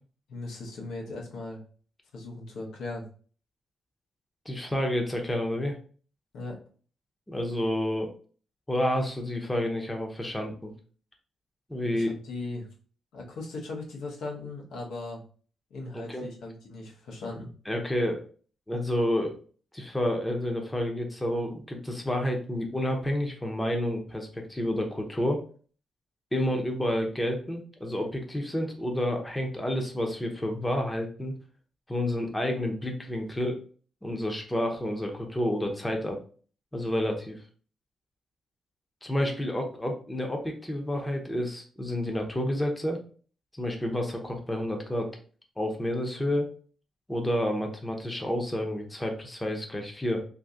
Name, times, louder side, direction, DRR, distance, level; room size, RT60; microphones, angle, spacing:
voice 1, 0.3-1.6 2.1-3.1 6.3-6.6 11.9-12.7 13.1-15.2 15.7-17.5, left 2 dB, 90° left, -1 dB, 0.9 m, -38 dB
voice 2, 4.5-5.8 7.3-8.1 8.7-10.7 11.7-12.2 15.9-16.3 17.7-18.2 18.7-19.4 19.7-25.4 26.3-31.3 31.9-33.6 34.0-36.2 36.7-37.4 39.0-43.0 43.5-45.1 45.6-46.5 47.1-50.2, left 1 dB, 10° left, 2 dB, 0.8 m, -29 dB
2.7 x 2.7 x 3.6 m, 0.41 s
cardioid pair, 100°, 0 cm